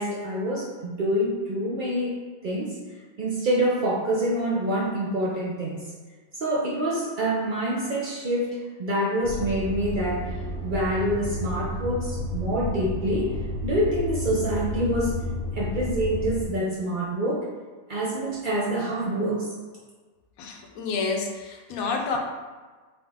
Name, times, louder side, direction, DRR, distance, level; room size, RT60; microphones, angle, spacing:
voice 1, 0.0-2.8 3.2-5.8 6.4-15.2 15.5-17.5 17.9-19.5, right 1 dB, 70° right, -5 dB, 0.4 m, -26 dB
sound 1, 9.2-16.4, left 1 dB, 20° left, 0.8 m, -31 dB
voice 2, 20.4-22.2, left 4 dB, 65° left, 2 dB, 1.0 m, -29 dB
3.9 x 3.7 x 3.4 m, 1.4 s
omnidirectional pair, 1.7 m